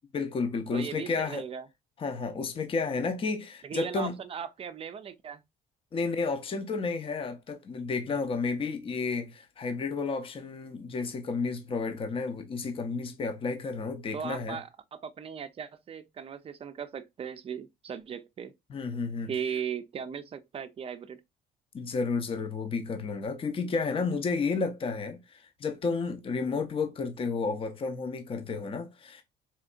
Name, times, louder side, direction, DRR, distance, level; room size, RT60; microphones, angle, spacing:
voice 1, 0.1-1.5 2.0-4.2 5.9-14.6 18.7-19.3 21.7-29.2, left 4 dB, 30° left, 0.7 m, -31 dB
voice 2, 0.7-1.7 3.6-5.4 14.1-18.5 19.3-21.2, right 7 dB, 35° right, 0.5 m, -37 dB
4.3 x 2.7 x 2.4 m
cardioid pair, 110°, 17 cm